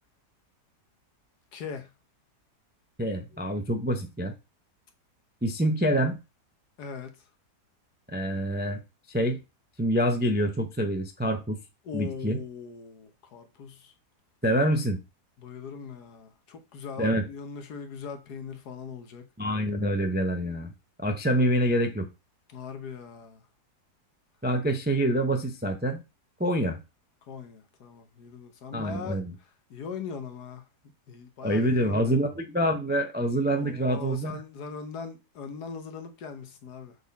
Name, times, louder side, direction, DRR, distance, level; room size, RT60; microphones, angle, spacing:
voice 1, 1.5-1.9 5.6-5.7 6.8-7.2 11.8-13.9 15.4-19.3 22.5-23.4 27.3-30.6 31.1-32.3 33.5-37.0, left 6 dB, 75° left, 1.6 m, -40 dB
voice 2, 3.0-4.3 5.4-6.2 8.1-8.8 9.1-9.4 9.8-11.6 11.9-12.4 14.4-15.0 17.0-17.3 19.4-20.7 21.0-22.1 24.4-26.0 26.4-26.8 28.7-29.3 31.4-34.4, right 1 dB, 10° right, 0.4 m, -26 dB
7.0 x 4.1 x 4.1 m
omnidirectional pair, 1.7 m